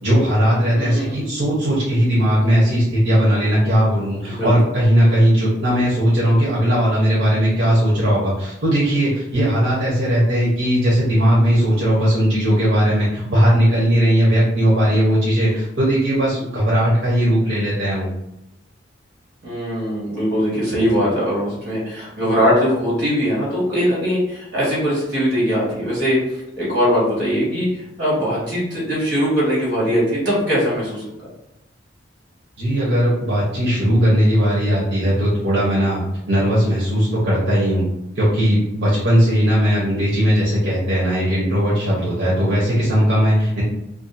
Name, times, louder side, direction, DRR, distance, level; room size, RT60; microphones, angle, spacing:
voice 1, 0.0-18.1 32.6-36.0 36.3-37.9 38.1-43.6, equal, 65° right, -7 dB, 0.8 m, -18 dB
voice 2, 0.8-1.2 4.3-4.5 19.4-26.2 26.6-31.0, equal, 50° right, -7 dB, 1.5 m, -21 dB
2.5 x 2.4 x 2.6 m, 0.85 s
head